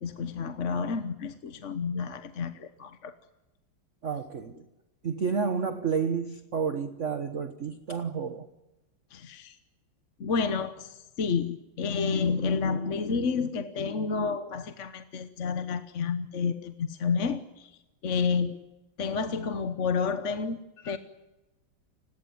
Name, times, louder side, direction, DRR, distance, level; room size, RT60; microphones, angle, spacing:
voice 1, 0.0-3.1 9.1-9.6 10.2-18.6 19.0-21.0, left 5 dB, 45° left, 10 dB, 1.1 m, -30 dB
voice 2, 4.0-4.6 5.0-8.5, right 6 dB, 45° right, 9 dB, 1.3 m, -30 dB
30.0 x 17.5 x 9.5 m, 1.0 s
omnidirectional pair, 2.2 m